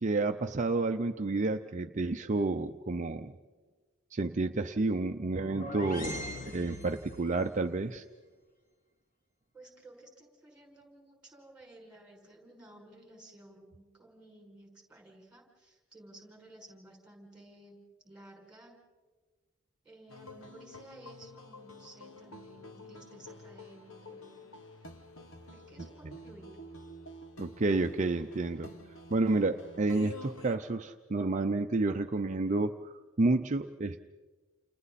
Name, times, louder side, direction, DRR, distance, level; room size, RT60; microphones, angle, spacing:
voice 1, 0.0-3.3 4.1-8.0 26.0-26.2 27.4-28.7 29.1-34.0, right 3 dB, 35° right, 5 dB, 0.7 m, -30 dB
sound 1, 5.2-7.4, left 1 dB, 40° left, 1.9 m, -41 dB
voice 2, 9.5-17.8 18.0-18.8 19.8-24.5 25.5-26.5, right 1 dB, 5° right, 0 dB, 6.0 m, -54 dB
sound 2, 20.1-30.6, left 1 dB, 75° left, 1.9 m, -49 dB
29.5 x 29.5 x 4.2 m, 1.4 s
head